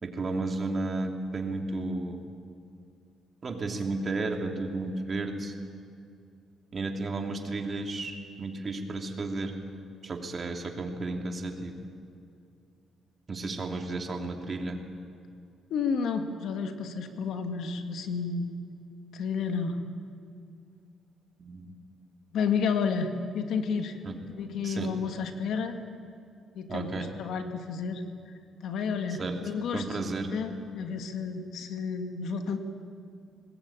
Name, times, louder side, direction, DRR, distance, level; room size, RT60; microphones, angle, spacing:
voice 1, 0.0-2.3 3.4-5.5 6.7-9.6 10.0-11.7 13.3-14.8 21.4-21.7 24.0-24.2 24.6-25.0 26.7-27.1 29.2-29.4 29.7-30.4, right 3 dB, 40° right, 3 dB, 2.9 m, -33 dB
voice 2, 15.7-18.5 19.1-19.8 22.3-24.0 24.4-25.8 26.5-28.0 28.6-30.0 30.3-32.6, left 5 dB, 75° left, 6 dB, 2.0 m, -31 dB
21.0 x 20.0 x 9.0 m, 2.4 s
cardioid pair, 90°, 0 cm